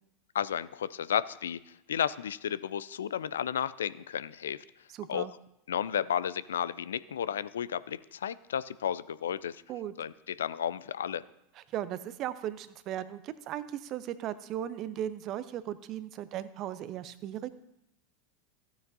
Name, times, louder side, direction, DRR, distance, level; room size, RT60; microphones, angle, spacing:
voice 1, 0.3-4.6 5.1-5.3 5.7-9.6 10.0-11.2, left 9 dB, 70° left, 17 dB, 0.3 m, -33 dB
voice 2, 4.9-5.3 9.7-9.9 11.7-17.5, right 11 dB, 40° right, 14 dB, 0.6 m, -37 dB
15.0 x 9.0 x 2.7 m, 0.82 s
figure-of-eight pair, 80°, 0 cm